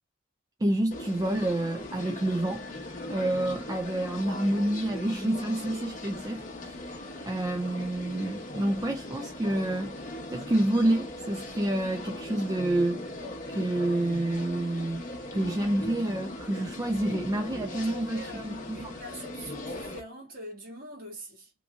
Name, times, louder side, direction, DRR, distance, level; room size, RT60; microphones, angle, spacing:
voice 1, 0.6-13.2 13.5-15.0 15.3-18.9, right 1 dB, 15° right, 0.3 m, -29 dB
sound 1, 0.9-20.0, left 1 dB, 35° left, 0.9 m, -39 dB
voice 2, 17.7-21.5, right 1 dB, 45° right, 1.6 m, -44 dB
3.0 x 2.6 x 3.4 m
head